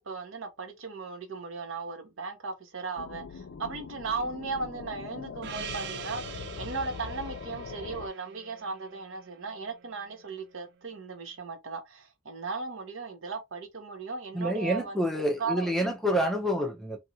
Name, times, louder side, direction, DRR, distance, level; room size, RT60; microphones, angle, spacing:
voice 1, 0.0-15.0 15.4-15.9, right 4 dB, 80° right, 0.8 m, -37 dB
sound 1, 3.0-8.1, left 5 dB, 60° left, 0.4 m, -41 dB
Gong, 5.4-10.2, right 8 dB, 60° right, 0.4 m, -44 dB
voice 2, 14.3-17.0, equal, ahead, 0.6 m, -28 dB
2.9 x 2.7 x 2.6 m
head